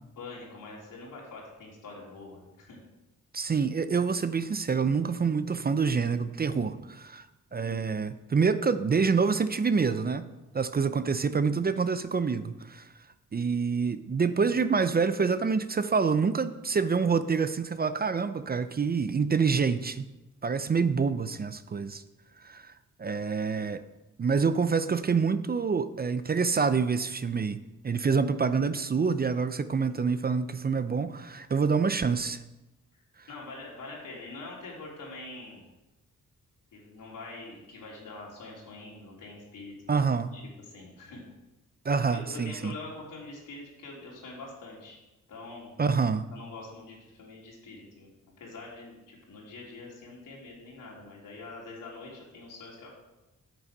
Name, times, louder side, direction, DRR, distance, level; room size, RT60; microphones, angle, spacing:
voice 1, 0.2-2.8 33.3-35.6 36.7-40.1 40.3-41.2 42.1-45.0 45.3-45.7 46.3-48.1 48.4-52.9, left 3 dB, 85° left, -3 dB, 3.3 m, -44 dB
voice 2, 3.3-7.3 7.5-10.3 10.5-12.9 13.3-20.1 20.4-22.0 22.4-22.7 23.0-23.8 24.2-27.6 27.8-32.4 33.2-33.3 39.9-40.3 41.8-42.7 45.8-46.3, right 5 dB, 30° right, 12 dB, 0.5 m, -27 dB
8.8 x 7.1 x 5.9 m, 1.0 s
cardioid pair, 80°, 32 cm